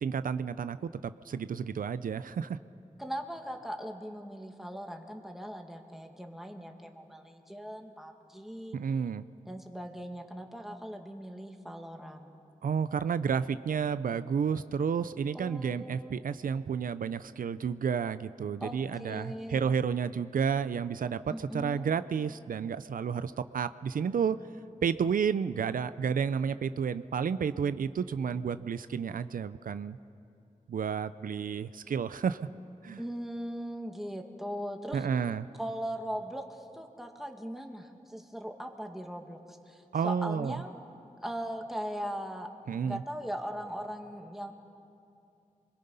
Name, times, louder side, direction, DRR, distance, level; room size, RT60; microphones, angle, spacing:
voice 1, 0.0-0.8 1.0-2.6 8.7-9.2 12.6-24.4 24.8-30.0 30.7-32.4 32.8-33.0 34.9-35.5 39.9-40.6 42.7-43.0, right 6 dB, 85° right, 13 dB, 0.5 m, -31 dB
voice 2, 3.0-8.8 9.5-12.4 15.3-16.2 18.6-19.7 21.3-21.9 33.0-35.1 35.6-40.7 41.2-42.5 42.8-44.5, equal, ahead, 3 dB, 1.9 m, -39 dB
28.0 x 22.0 x 5.5 m, 2.7 s
wide cardioid pair, 85°, 14 cm